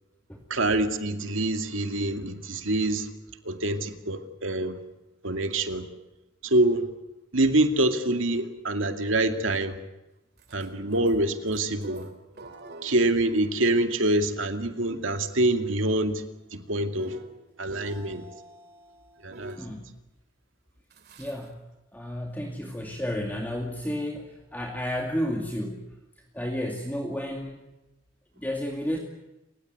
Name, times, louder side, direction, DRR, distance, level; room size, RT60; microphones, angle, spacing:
voice 1, 0.5-3.1 3.4-4.8 5.2-5.9 6.4-6.9 7.3-9.8 10.5-12.1 12.8-16.2 16.5-17.2 17.6-18.3 19.2-19.8, right 1 dB, 75° right, 2.4 m, -25 dB
sound 1, 10.4-19.7 20.9-21.5, right 1 dB, 55° right, 2.7 m, -46 dB
voice 2, 19.6-19.9 21.2-21.6 21.9-25.9 26.3-27.6 28.4-29.0, equal, 10° left, 2.3 m, -32 dB
29.0 x 16.5 x 9.4 m
head